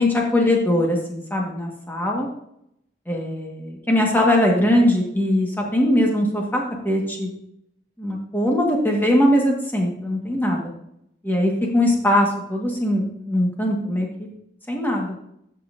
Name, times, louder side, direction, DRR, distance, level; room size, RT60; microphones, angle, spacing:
voice 1, 0.0-2.3 3.1-7.3 8.0-10.7 11.2-14.1 14.7-15.1, left 1 dB, 10° left, -1 dB, 1.6 m, -21 dB
13.0 x 5.6 x 2.7 m, 0.75 s
head